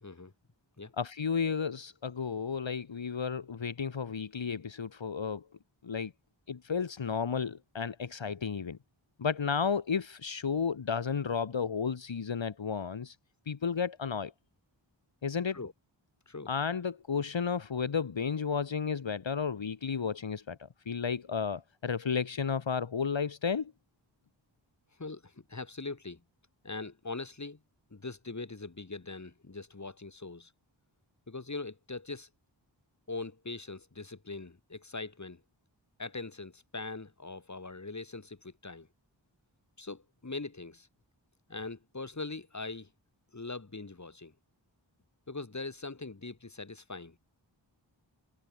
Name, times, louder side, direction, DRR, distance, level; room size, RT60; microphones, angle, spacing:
voice 1, 0.0-0.3 0.8-0.9 15.5-15.7 16.3-16.5 25.0-26.2 26.6-27.6 27.9-30.5 31.3-32.3 33.1-35.4 36.0-38.9 39.8-40.9 41.5-42.9 43.3-44.3 45.3-47.2, left 3 dB, 35° left, 2.6 m, -41 dB
voice 2, 1.0-5.4 5.8-6.1 6.5-8.8 9.2-13.1 13.5-14.3 15.2-15.6 16.5-23.7, left 6 dB, 75° left, 1.6 m, -33 dB
wide cardioid pair, 50°, 46 cm